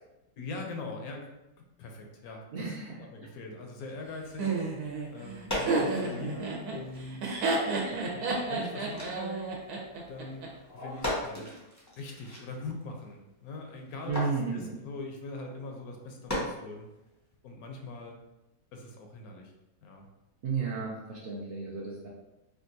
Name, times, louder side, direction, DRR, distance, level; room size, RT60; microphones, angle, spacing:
voice 1, 0.4-1.3 1.8-4.5 5.1-7.4 7.9-9.4 10.1-10.5 10.7-11.5 12.0-16.9 17.4-18.2 18.7-19.5 19.8-20.1, left 3 dB, 75° left, 2 dB, 1.0 m, -42 dB
voice 2, 2.5-3.3 14.1-14.8 20.4-22.1, right 5 dB, 70° right, -3 dB, 0.5 m, -33 dB
sound 1, 3.8-4.0 4.9-5.0 5.3-6.5 6.7-9.7 10.0-10.1 10.3-13.1 13.5-14.9 15.9-16.0 16.2-17.1, left 1 dB, 20° left, 0.5 m, -38 dB
Laughter, 4.4-10.5, right 3 dB, 90° right, 1.2 m, -31 dB
3.7 x 2.3 x 2.6 m, 0.96 s
omnidirectional pair, 1.6 m